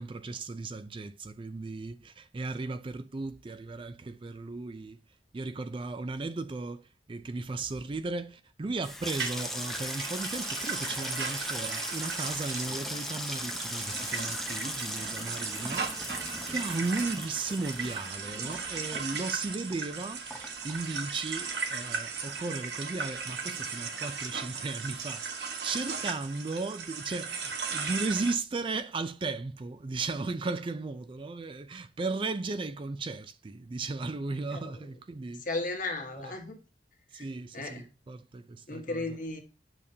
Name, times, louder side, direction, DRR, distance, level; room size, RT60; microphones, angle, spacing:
voice 1, 0.0-5.0 5.3-35.4 36.2-36.3 37.1-39.2, right 3 dB, 30° right, 0.4 m, -36 dB
Water tap faucet / Sink (filling or washing), 8.7-21.5 21.8-22.5 22.7-23.1, left 1 dB, ahead, 0.8 m, -39 dB
sound 1, 9.1-28.3, right 5 dB, 65° right, 1.3 m, -37 dB
voice 2, 35.4-36.6 37.1-37.3 37.5-37.8 38.7-39.4, left 2 dB, 45° left, 1.7 m, -35 dB
8.5 x 6.9 x 2.8 m
head